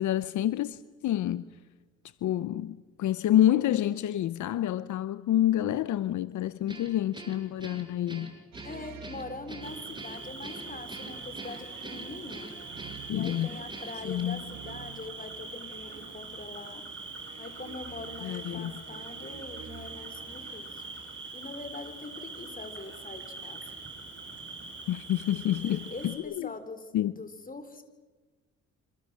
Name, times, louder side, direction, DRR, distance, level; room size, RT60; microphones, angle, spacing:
voice 1, 0.0-1.4 2.2-8.3 13.1-13.5 14.0-14.4 18.2-18.7 24.9-26.5 26.9-27.1, left 12 dB, 75° left, 0.8 m, -28 dB
Guitar, 6.7-14.2, right 1 dB, 15° right, 6.4 m, -45 dB
sound 1, 8.5-21.0, right 8 dB, 65° right, 2.9 m, -50 dB
voice 2, 8.6-12.5 13.1-16.9 17.4-20.8 21.3-23.6 25.5-27.8, left 3 dB, 30° left, 4.1 m, -43 dB
Cricket, 9.6-26.2, right 3 dB, 40° right, 7.8 m, -43 dB
27.0 x 26.5 x 7.6 m
cardioid pair, 90°, 30 cm